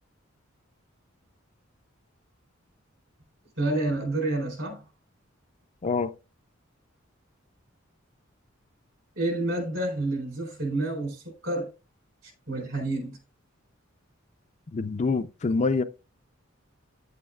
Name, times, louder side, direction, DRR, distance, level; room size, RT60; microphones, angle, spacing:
voice 1, 3.6-4.8 9.1-11.7 12.5-13.2, right 2 dB, 70° right, 4.0 m, -29 dB
voice 2, 14.7-15.8, left 4 dB, 35° left, 0.4 m, -25 dB
9.5 x 8.5 x 2.3 m
head